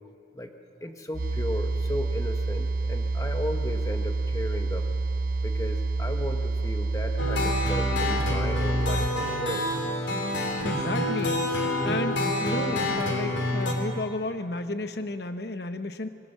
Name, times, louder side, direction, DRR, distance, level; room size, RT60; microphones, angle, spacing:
voice 1, 0.8-4.9 5.4-9.6, left 1 dB, 15° left, 5 dB, 1.3 m, -35 dB
sound 1, 1.1-9.1, right 3 dB, 45° right, 0.6 m, -28 dB
sound 2, 7.2-13.7, left 1 dB, 80° left, 3.2 m, -27 dB
voice 2, 10.6-11.5 11.8-16.1, left 2 dB, 55° left, 9 dB, 1.1 m, -32 dB
sound 3, 11.8-14.6, right 1 dB, 15° right, 4.8 m, -43 dB
26.0 x 22.0 x 6.8 m, 2.5 s
head